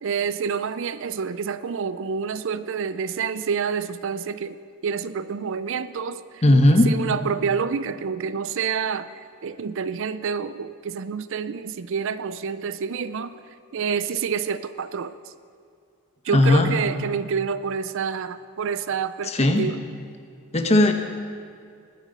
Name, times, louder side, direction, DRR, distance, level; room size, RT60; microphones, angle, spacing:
voice 1, 0.0-6.4 6.7-13.4 13.7-15.2 16.2-19.8, right 6 dB, 60° right, 14 dB, 0.4 m, -28 dB
voice 2, 6.4-6.9 16.3-16.7 19.2-19.7 20.5-20.9, left 1 dB, 30° left, 6 dB, 1.0 m, -17 dB
20.0 x 9.1 x 5.4 m, 2.3 s
head